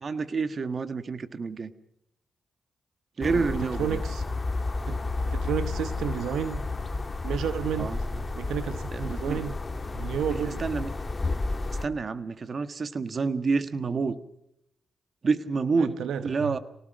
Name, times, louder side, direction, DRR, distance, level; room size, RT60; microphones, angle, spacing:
voice 1, 0.0-1.7 3.2-4.0 7.8-8.0 8.9-9.4 10.6-10.9 11.8-14.2 15.2-16.6, right 4 dB, 55° right, 11 dB, 1.5 m, -28 dB
sound 1, 3.2-11.9, left 3 dB, 35° left, 1.8 m, -31 dB
voice 2, 3.2-4.3 4.9-5.0 5.3-6.6 7.2-8.1 8.4-9.6 9.9-10.6 15.7-16.6, right 8 dB, 85° right, 11 dB, 1.0 m, -32 dB
25.0 x 18.5 x 6.3 m, 0.81 s
supercardioid pair, 50°, 0 cm